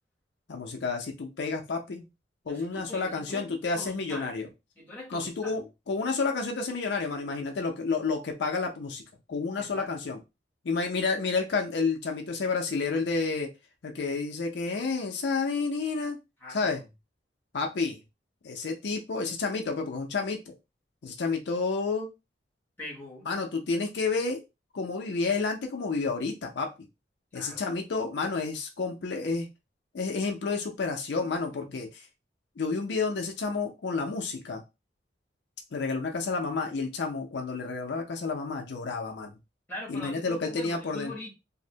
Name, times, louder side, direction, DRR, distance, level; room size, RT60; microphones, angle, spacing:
voice 1, 0.5-2.1 2.5-4.5 5.1-9.0 9.3-10.2 10.6-13.5 13.8-16.2 16.5-16.8 17.5-18.0 18.4-20.5 21.0-22.1 23.3-24.4 24.7-26.7 27.3-29.5 29.9-32.1 32.6-34.6 35.7-39.3 39.9-41.1, left 4 dB, 70° left, 0.4 m, -30 dB
voice 2, 2.5-3.5 3.7-4.3 4.8-5.5 9.6-9.9 16.4-16.8 22.8-23.3 27.3-27.6 39.7-41.3, left 1 dB, 10° left, 0.8 m, -42 dB
2.6 x 2.0 x 2.7 m
head